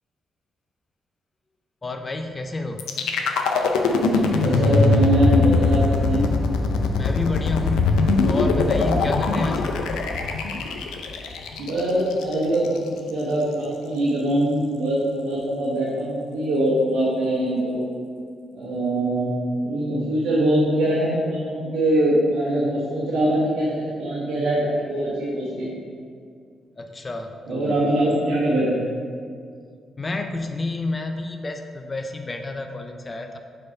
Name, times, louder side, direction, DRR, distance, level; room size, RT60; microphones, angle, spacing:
voice 1, 1.8-2.8 7.0-9.8 26.8-27.8 30.0-33.4, left 2 dB, 30° left, 5 dB, 0.4 m, -29 dB
sound 1, 2.8-12.8, left 3 dB, 90° left, 0.5 m, -21 dB
voice 2, 4.3-6.3 11.6-17.9 18.5-19.4 19.6-25.7 27.5-28.8, right 1 dB, 85° right, -9 dB, 1.2 m, -23 dB
5.1 x 4.3 x 4.7 m, 2.2 s
supercardioid pair, 65°, 0 cm